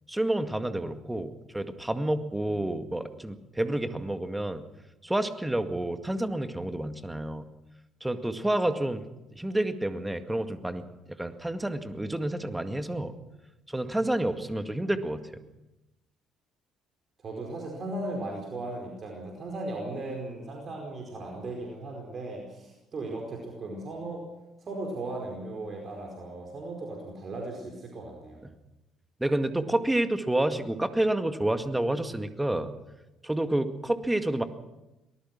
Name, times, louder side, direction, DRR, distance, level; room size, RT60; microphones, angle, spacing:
voice 1, 0.1-4.6 5.0-7.4 8.0-9.0 9.4-13.1 13.7-15.2 28.4-28.5 29.2-32.7 33.2-34.4, right 1 dB, 10° right, 9 dB, 2.0 m, -29 dB
voice 2, 17.2-24.2 24.6-28.4, right 2 dB, 40° right, 1 dB, 4.8 m, -37 dB
23.5 x 19.5 x 6.2 m, 0.98 s
figure-of-eight pair, 45°, 0 cm